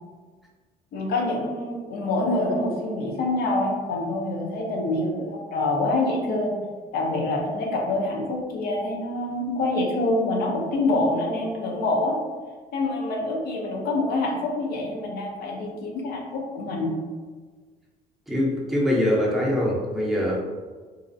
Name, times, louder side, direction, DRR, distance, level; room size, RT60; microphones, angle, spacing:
voice 1, 0.9-6.6 6.9-12.2 12.7-16.9, left 2 dB, 65° left, -1 dB, 0.6 m, -26 dB
voice 2, 18.3-20.4, left 1 dB, ahead, -5 dB, 0.6 m, -23 dB
2.5 x 2.0 x 2.5 m, 1.4 s
cardioid pair, 110°, 17 cm